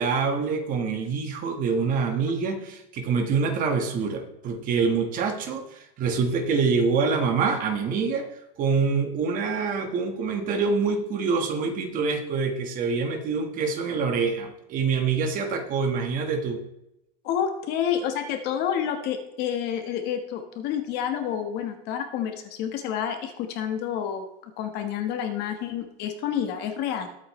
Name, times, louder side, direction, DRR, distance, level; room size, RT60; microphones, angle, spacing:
voice 1, 0.0-8.3 8.6-16.6, right 5 dB, 30° right, 6 dB, 1.5 m, -25 dB
voice 2, 17.2-27.1, left 9 dB, 35° left, 6 dB, 1.4 m, -29 dB
21.0 x 8.4 x 3.2 m, 0.85 s
supercardioid pair, 175°, 29 cm